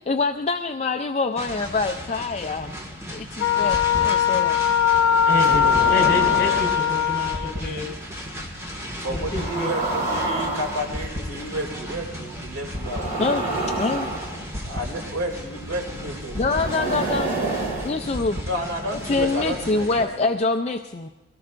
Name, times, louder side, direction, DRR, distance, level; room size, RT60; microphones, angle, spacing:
voice 1, 0.1-2.8 3.1-4.6 13.2-13.4 13.8-14.1 16.3-18.4 19.0-21.1, left 3 dB, 30° left, 6 dB, 0.4 m, -25 dB
sound 1, 1.4-20.1, equal, 15° right, 1.7 m, -36 dB
Wind instrument woodwind instrument, 3.4-7.5, left 9 dB, 70° left, 0.9 m, -20 dB
sound 2, 3.7-4.0 5.3-6.8 7.3-7.6 9.1-11.2 12.7-14.8 16.3-18.4, right 2 dB, 40° right, 3.6 m, -28 dB
voice 2, 5.3-7.9 9.1-9.7, left 2 dB, 45° left, 0 dB, 4.1 m, -29 dB
voice 3, 9.0-13.5 14.6-17.8 18.4-20.3, right 1 dB, 85° right, 1 dB, 2.8 m, -32 dB
22.5 x 18.0 x 2.5 m, 1.1 s
head